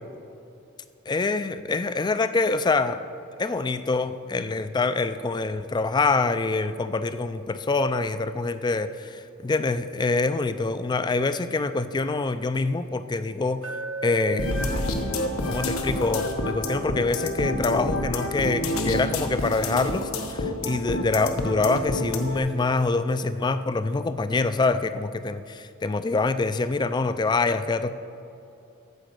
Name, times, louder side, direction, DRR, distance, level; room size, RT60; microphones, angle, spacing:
voice 1, 1.1-3.0 3.4-13.8 14.0-14.5 15.5-27.9, left 3 dB, 20° left, 12 dB, 0.3 m, -25 dB
Glass, 13.6-17.8, right 2 dB, 65° right, 0.7 m, -38 dB
sound 1, 14.4-22.4, left 1 dB, 85° left, 1.0 m, -28 dB
14.5 x 5.1 x 6.6 m, 2.7 s
head